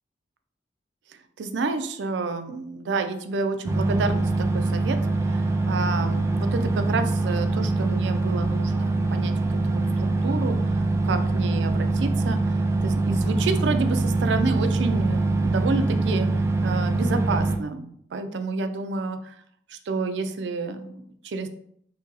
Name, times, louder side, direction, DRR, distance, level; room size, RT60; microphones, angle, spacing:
voice 1, 1.4-5.0 5.2-19.3 19.7-21.5, right 3 dB, 90° right, 8 dB, 0.4 m, -29 dB
sound 1, 3.7-17.6, right 2 dB, 15° right, 0.3 m, -24 dB
2.8 x 2.6 x 3.9 m, 0.68 s
head